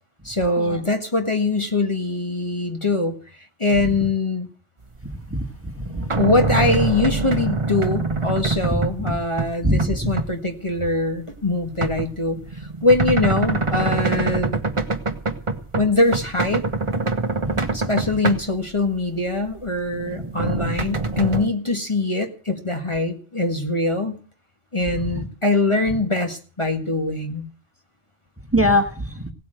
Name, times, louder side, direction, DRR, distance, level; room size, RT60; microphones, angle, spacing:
voice 1, 0.2-3.2 3.6-4.5 6.2-14.6 15.8-16.7 17.7-24.2 24.7-27.5, left 2 dB, 30° left, 5 dB, 1.7 m, -23 dB
sound 1, 5.4-9.5 9.8-10.3 10.8-18.8 19.3-21.5, right 3 dB, 30° right, 1.2 m, -25 dB
voice 2, 9.6-10.1 17.4-17.6 25.1-25.2 28.5-29.3, equal, 10° right, 6 dB, 1.7 m, -22 dB
17.5 x 8.4 x 7.8 m, 0.40 s
omnidirectional pair, 1.1 m